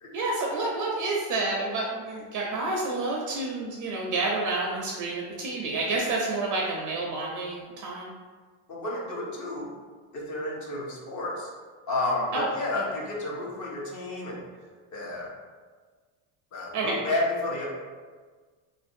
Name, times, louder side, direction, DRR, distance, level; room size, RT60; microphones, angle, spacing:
voice 1, 0.1-8.1 12.3-12.5 12.7-12.8 16.7-17.0, right 2 dB, 45° right, -2 dB, 0.4 m, -29 dB
voice 2, 8.7-9.7 10.1-11.5 11.9-14.4 14.9-15.3 16.5-17.7, left 2 dB, 40° left, -3 dB, 0.6 m, -31 dB
2.5 x 2.1 x 2.5 m, 1.5 s
supercardioid pair, 105°, 45 cm